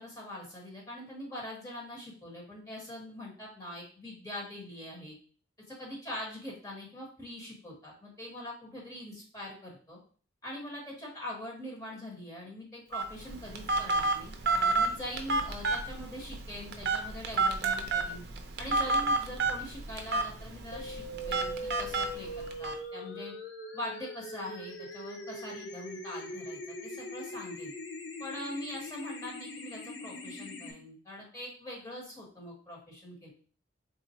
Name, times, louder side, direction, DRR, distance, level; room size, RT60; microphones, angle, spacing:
voice 1, 0.0-5.1 5.7-10.0 10.4-18.2 18.6-23.3 23.7-27.7 28.2-33.3, left 1 dB, 20° left, -3 dB, 1.1 m, -43 dB
Telephone, 12.9-22.7, right 3 dB, 60° right, 0.5 m, -31 dB
sound 1, 20.7-30.7, left 1 dB, 75° left, 0.6 m, -41 dB
3.9 x 2.0 x 4.1 m, 0.42 s
head